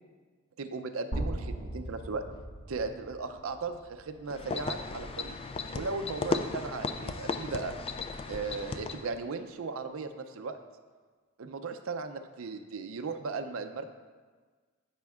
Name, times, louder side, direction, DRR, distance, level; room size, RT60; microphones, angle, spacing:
voice 1, 0.6-2.2 2.7-5.3 5.7-7.7 8.3-10.6 11.4-13.9, right 4 dB, 70° right, 7 dB, 0.5 m, -37 dB
sound 1, 1.1-5.1, right 1 dB, 70° left, 2.1 m, -39 dB
sound 2, 4.3-9.2, left 4 dB, 25° left, 0.3 m, -35 dB
13.0 x 5.1 x 2.4 m, 1.5 s
head